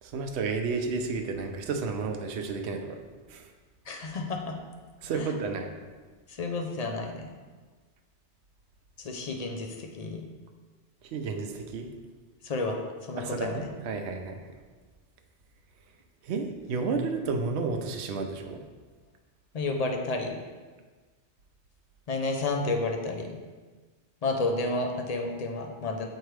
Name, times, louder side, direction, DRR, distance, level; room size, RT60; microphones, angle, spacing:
voice 1, 0.0-3.0 3.3-3.5 5.0-5.7 11.0-11.9 13.2-14.5 16.2-18.6, right 4 dB, 75° right, 5 dB, 0.9 m, -32 dB
voice 2, 3.9-4.5 5.1-5.3 6.3-7.3 9.0-10.2 12.4-12.8 13.1-13.7 19.5-20.4 22.1-23.4 24.2-26.1, left 3 dB, 45° left, 3 dB, 0.6 m, -31 dB
6.6 x 4.5 x 3.2 m, 1.4 s
omnidirectional pair, 1.2 m